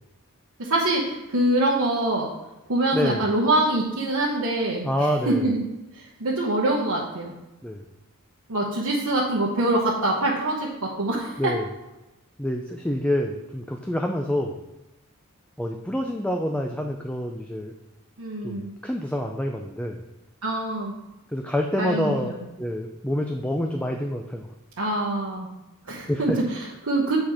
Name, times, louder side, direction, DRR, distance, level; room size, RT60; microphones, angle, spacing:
voice 1, 0.6-2.3 2.7-4.9 5.3-5.6 5.9-7.3 8.5-11.5 18.2-18.7 20.4-20.9 21.8-22.4 24.8-25.5 25.9-27.2, right 1 dB, 85° right, -4 dB, 1.1 m, -24 dB
voice 2, 2.9-3.3 4.8-5.5 7.6-7.9 11.4-11.7 12.4-14.6 15.6-17.7 18.4-20.0 21.3-22.3 22.6-24.5 26.1-26.4, equal, 5° left, 3 dB, 0.4 m, -27 dB
8.1 x 4.3 x 4.8 m, 0.99 s
head